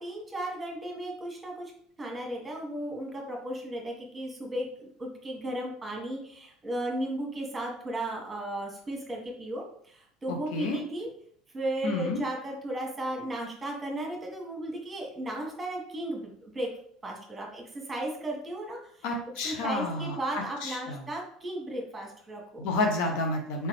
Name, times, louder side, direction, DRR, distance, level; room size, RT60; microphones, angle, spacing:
voice 1, 0.0-1.7 2.0-11.1 11.5-16.7 17.0-18.8 19.4-22.6, right 1 dB, 15° right, 0 dB, 1.4 m, -35 dB
voice 2, 10.3-10.8 11.8-12.2 19.0-21.0 22.6-23.7, left 2 dB, 55° left, 2 dB, 0.7 m, -30 dB
4.1 x 3.7 x 3.3 m, 0.63 s
figure-of-eight pair, 65°, 0 cm